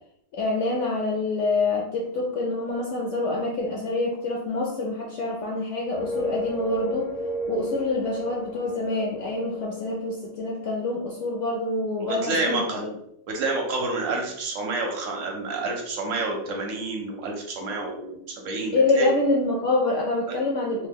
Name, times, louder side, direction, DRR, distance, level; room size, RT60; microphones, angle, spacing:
voice 1, 0.3-7.1 7.5-12.9 18.7-20.9, left 2 dB, 65° left, -1 dB, 0.8 m, -26 dB
sound 1, 5.9-10.7, equal, 85° left, 1.2 m, -33 dB
voice 2, 12.0-12.8 13.3-19.1 20.3-20.4, right 3 dB, 65° right, 1 dB, 1.0 m, -29 dB
3.0 x 2.1 x 3.5 m, 0.73 s
omnidirectional pair, 1.5 m